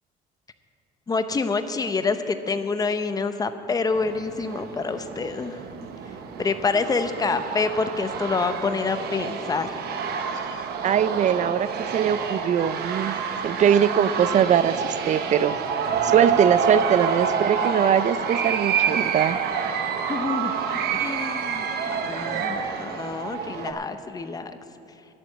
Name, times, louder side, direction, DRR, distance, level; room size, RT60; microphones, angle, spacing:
voice 1, 1.1-5.6 6.4-9.8 20.1-20.5 20.9-24.6, left 4 dB, 20° left, 9 dB, 0.7 m, -27 dB
sound 1, 3.9-23.7, right 6 dB, 70° right, 1.0 m, -28 dB
voice 2, 10.8-13.1 13.4-15.6 16.0-19.4, right 9 dB, 45° right, 15 dB, 0.5 m, -21 dB
11.0 x 7.4 x 8.8 m, 2.8 s
cardioid pair, 110°, 17 cm